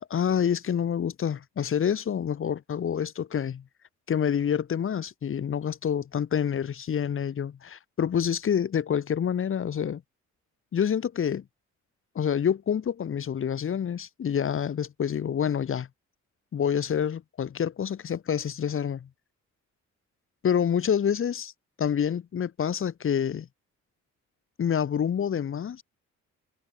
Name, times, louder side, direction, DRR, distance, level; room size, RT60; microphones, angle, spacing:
voice 1, 0.0-3.6 4.1-10.0 10.7-11.4 12.1-15.9 16.5-19.1 20.4-21.5 21.8-23.5 24.6-25.8, left 8 dB, 45° left, 1.2 m, -27 dB
cardioid pair, 90°, 30 cm